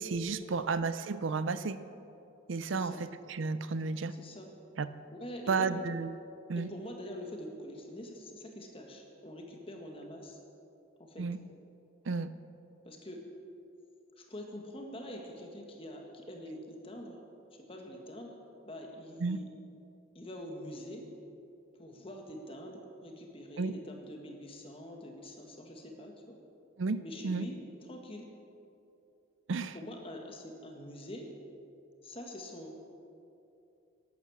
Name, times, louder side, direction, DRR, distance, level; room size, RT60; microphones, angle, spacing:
voice 1, 0.0-1.8 2.5-2.9 3.3-4.1 4.8-4.9 5.5-6.2 6.5-6.7 11.2-11.4 12.1-12.3 19.2-19.4 23.6-23.7 26.8-27.5 29.5-29.8, right 4 dB, 70° right, 13 dB, 0.5 m, -32 dB
voice 2, 2.7-3.0 4.1-4.5 5.1-5.8 6.6-10.4 11.0-11.2 12.8-13.2 14.2-17.2 17.7-18.4 18.7-19.5 20.2-21.1 21.7-26.4 27.0-27.6 27.9-28.3 29.7-31.3 32.0-32.7, left 1 dB, 25° left, 2 dB, 1.7 m, -45 dB
12.0 x 12.0 x 7.2 m, 2.7 s
head